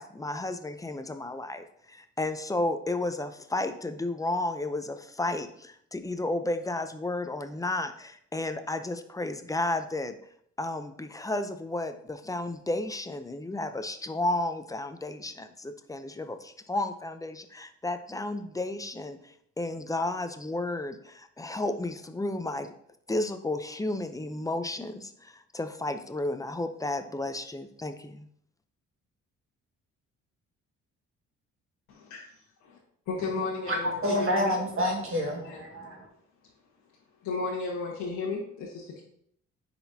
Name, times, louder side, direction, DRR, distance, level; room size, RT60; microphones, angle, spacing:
voice 1, 0.0-10.2 10.6-22.7 23.1-28.2, left 2 dB, 10° left, 0.6 m, -32 dB
voice 2, 31.9-32.2 32.6-32.8 33.1-34.6 35.3-35.6 37.2-39.0, left 4 dB, 85° left, 1.3 m, -34 dB
voice 3, 33.7-36.1, equal, 45° right, 1.9 m, -28 dB
9.8 x 4.2 x 2.7 m
cardioid pair, 90°, 30 cm